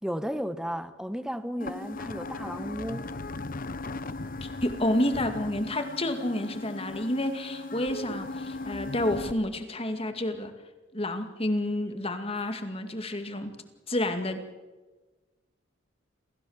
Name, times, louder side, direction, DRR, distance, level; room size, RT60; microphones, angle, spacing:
voice 1, 0.0-3.1, equal, 5° right, 1.1 m, -34 dB
sound 1, 1.6-9.3, left 2 dB, 45° left, 0.9 m, -37 dB
voice 2, 4.4-10.5 10.9-13.5 13.9-14.4, left 1 dB, 30° left, 2.2 m, -29 dB
28.0 x 16.0 x 7.3 m
head